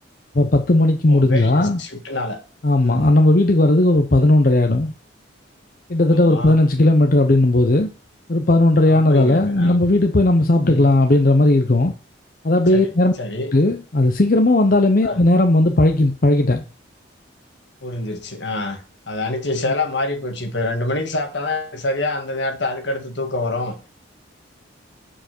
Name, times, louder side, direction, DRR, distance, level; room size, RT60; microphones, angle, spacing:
voice 1, 0.3-1.8 2.6-4.9 5.9-7.9 8.3-11.9 12.4-13.1 13.5-16.6, left 2 dB, 45° left, 0.7 m, -16 dB
voice 2, 1.1-2.4 2.7-3.1 6.2-6.5 8.9-9.8 10.6-10.9 12.7-12.9 13.2-13.5 15.0-15.2 17.8-23.7, left 2 dB, 65° left, 1.7 m, -26 dB
7.5 x 6.9 x 4.5 m
head